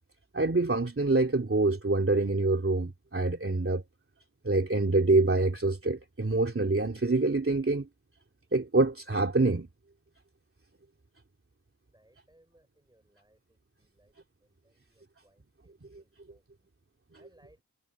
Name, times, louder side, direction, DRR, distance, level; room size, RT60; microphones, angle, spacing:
voice 1, 0.3-3.8 4.4-7.9 8.5-9.7, right 2 dB, 40° right, 3.1 m, -26 dB
voice 2, 11.9-13.4 14.0-14.1 16.3-16.4 17.2-17.6, right 1 dB, 10° right, 7.3 m, -62 dB
wide cardioid pair, 65°, 34 cm